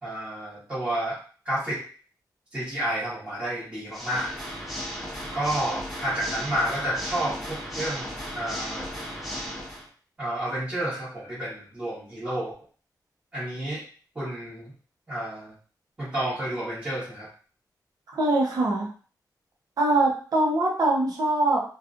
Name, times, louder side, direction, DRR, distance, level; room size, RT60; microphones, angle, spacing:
voice 1, 0.0-1.2 1.4-1.8 2.5-4.3 5.3-8.9 10.2-12.5 13.3-13.8 14.1-14.7 15.1-15.5 16.0-17.3, right 1 dB, 20° right, -12 dB, 1.3 m, -30 dB
Water / Mechanisms, 3.9-9.9, equal, ahead, 0.7 m, -35 dB
voice 2, 18.1-18.9 19.8-21.6, right 2 dB, 60° right, -2 dB, 0.8 m, -23 dB
2.9 x 2.4 x 2.5 m, 0.40 s
wide cardioid pair, 180°, 7 cm